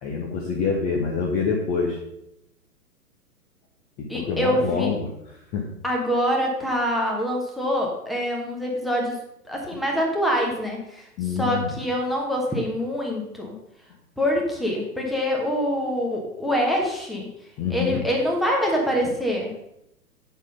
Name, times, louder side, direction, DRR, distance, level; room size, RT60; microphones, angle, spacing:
voice 1, 0.0-2.0 4.0-5.1 5.5-5.7 11.2-11.8 17.6-18.0, left 5 dB, 15° left, -1 dB, 0.8 m, -26 dB
voice 2, 4.1-5.0 5.8-9.2 9.4-11.1 11.3-13.5 14.2-17.3 17.7-19.5, equal, ahead, -1 dB, 1.1 m, -25 dB
8.3 x 6.1 x 5.3 m, 0.83 s
figure-of-eight pair, 115°, 47 cm